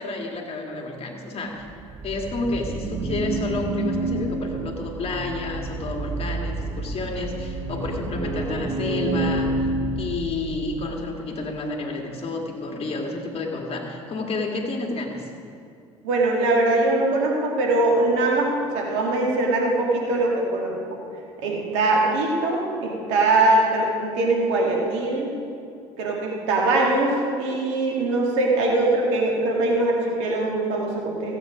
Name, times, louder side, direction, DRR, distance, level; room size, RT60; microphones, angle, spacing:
voice 1, 0.0-1.7 2.0-9.7 10.0-15.3, left 2 dB, 40° left, 1 dB, 2.3 m, -30 dB
sound 1, 1.6-11.0, right 2 dB, 30° right, 1.3 m, -29 dB
voice 2, 16.0-21.0 21.4-25.3 26.0-31.4, right 2 dB, 75° right, -1 dB, 2.3 m, -22 dB
16.0 x 8.4 x 5.2 m, 2.5 s
hypercardioid pair, 65°, 15 cm